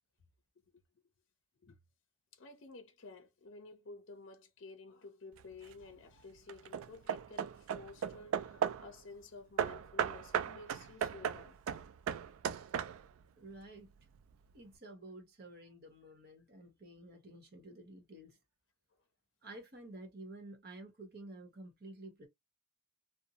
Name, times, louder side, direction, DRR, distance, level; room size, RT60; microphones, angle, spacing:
voice 1, 2.3-11.6, left 3 dB, 60° left, 0.5 m, -53 dB
Hammer / Wood, 5.4-5.8 6.5-8.9 9.6-13.2, right 8 dB, 80° right, 0.3 m, -37 dB
voice 2, 13.4-14.1 14.5-18.4 19.4-22.3, right 1 dB, 50° right, 1.0 m, -51 dB
2.6 x 2.1 x 2.8 m
head